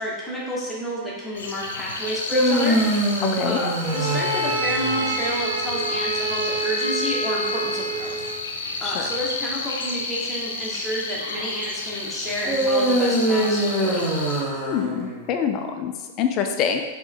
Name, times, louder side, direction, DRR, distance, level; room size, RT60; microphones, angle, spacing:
voice 1, 0.0-2.8 3.4-8.2 8.8-14.0, equal, 10° left, -6 dB, 1.4 m, -30 dB
sound 1, 1.3-14.4, left 3 dB, 80° left, 0.6 m, -31 dB
sound 2, 2.1-5.3 12.4-15.4, right 1 dB, 10° right, 1.4 m, -23 dB
voice 2, 3.2-3.6 8.8-9.1 14.7-16.8, left 7 dB, 45° left, 5 dB, 0.4 m, -25 dB
Bowed string instrument, 3.8-8.4, right 3 dB, 80° right, 0.6 m, -28 dB
4.3 x 3.0 x 3.7 m, 1.3 s
hypercardioid pair, 105°, 0 cm